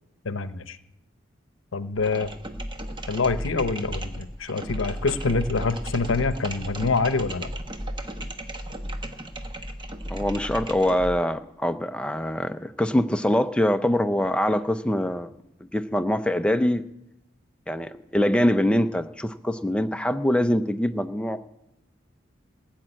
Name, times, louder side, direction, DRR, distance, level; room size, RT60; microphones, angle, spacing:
voice 1, 0.2-0.8 1.7-2.3 3.1-7.5, left 4 dB, 85° left, 13 dB, 0.8 m, -26 dB
sound 1, 1.9-11.3, right 1 dB, 25° right, 0.9 m, -34 dB
voice 2, 10.1-15.3 15.7-16.8 17.7-21.4, left 1 dB, 5° left, 9 dB, 0.5 m, -24 dB
15.5 x 7.4 x 9.0 m, 0.87 s
head